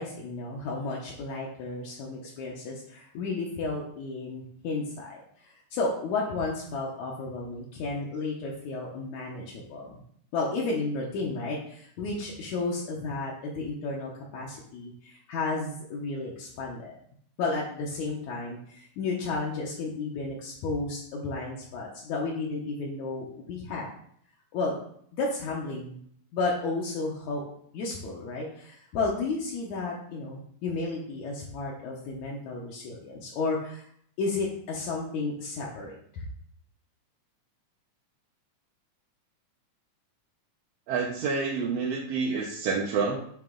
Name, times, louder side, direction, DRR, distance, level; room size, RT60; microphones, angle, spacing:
voice 1, 0.0-10.0 10.3-17.0 17.4-23.9 24.5-24.8 25.1-26.0 26.3-27.4 27.7-33.8 34.2-36.2, left 3 dB, 75° left, -3 dB, 2.3 m, -32 dB
voice 2, 40.9-43.2, right 5 dB, 70° right, -2 dB, 1.7 m, -28 dB
8.9 x 3.1 x 3.7 m, 0.65 s
omnidirectional pair, 3.5 m